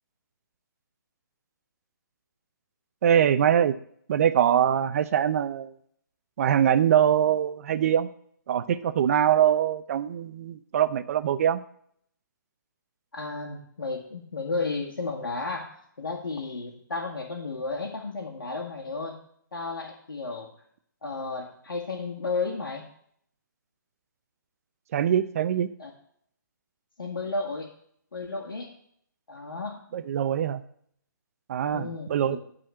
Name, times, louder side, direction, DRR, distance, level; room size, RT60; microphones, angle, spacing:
voice 1, 3.0-3.7 4.1-5.7 6.4-8.1 8.5-11.6 24.9-25.7 29.9-30.6 31.5-32.4, right 9 dB, 45° right, 12 dB, 0.7 m, -23 dB
voice 2, 13.1-15.7 16.0-19.2 19.5-20.5 21.0-22.9 25.8-25.9 27.0-27.7 28.1-28.7 29.3-29.8 31.7-32.4, left 3 dB, 85° left, -1 dB, 1.9 m, -33 dB
11.5 x 4.3 x 7.7 m, 0.66 s
hypercardioid pair, 150°, 11 cm